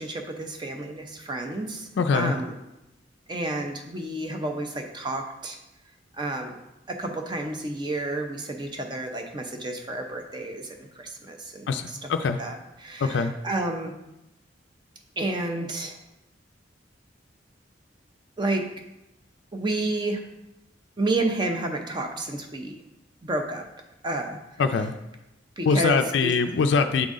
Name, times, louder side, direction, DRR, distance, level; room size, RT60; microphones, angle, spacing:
voice 1, 0.0-2.5 3.3-5.6 6.2-6.6 6.9-13.9 15.2-16.0 18.4-18.6 19.5-20.2 21.0-22.8 23.2-23.6 24.0-24.4 25.6-26.3, right 2 dB, 25° right, 4 dB, 0.6 m, -30 dB
voice 2, 2.0-2.3 11.7-12.4 13.0-13.3 24.6-24.9 25.7-27.1, left 5 dB, 70° left, 7 dB, 0.4 m, -23 dB
7.0 x 3.9 x 3.7 m, 0.93 s
head